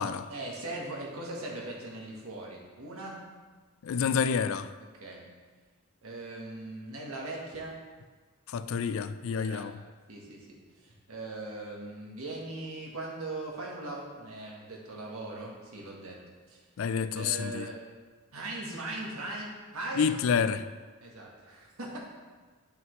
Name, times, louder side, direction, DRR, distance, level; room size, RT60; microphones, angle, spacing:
voice 1, 0.3-3.2 4.9-5.2 6.0-7.8 9.4-9.7 10.1-16.2 16.5-16.6 17.1-17.8 18.3-20.1 21.0-22.0, right 2 dB, 80° right, 1.6 m, -39 dB
voice 2, 3.8-4.7 8.5-9.7 16.8-17.7 20.0-20.6, left 6 dB, 65° left, 0.3 m, -28 dB
9.2 x 5.6 x 3.2 m
head